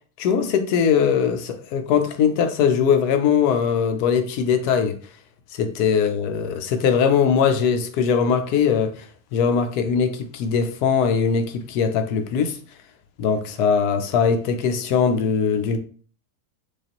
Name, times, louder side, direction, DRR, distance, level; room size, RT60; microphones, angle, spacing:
voice 1, 0.2-5.0 5.5-9.1 9.3-12.6 13.2-15.8, left 6 dB, 90° left, 1.1 m, -21 dB
4.9 x 2.4 x 2.9 m
omnidirectional pair, 1.6 m